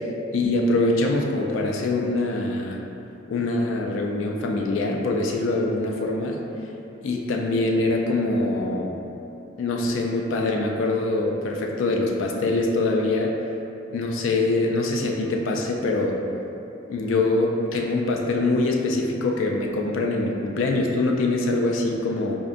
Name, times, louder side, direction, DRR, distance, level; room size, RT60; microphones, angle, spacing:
voice 1, 0.3-2.8 3.3-6.4 7.0-8.9 9.6-13.3 13.9-16.2 16.9-22.4, left 2 dB, 80° left, 1 dB, 0.3 m, -24 dB
4.9 x 2.5 x 2.5 m, 2.8 s
head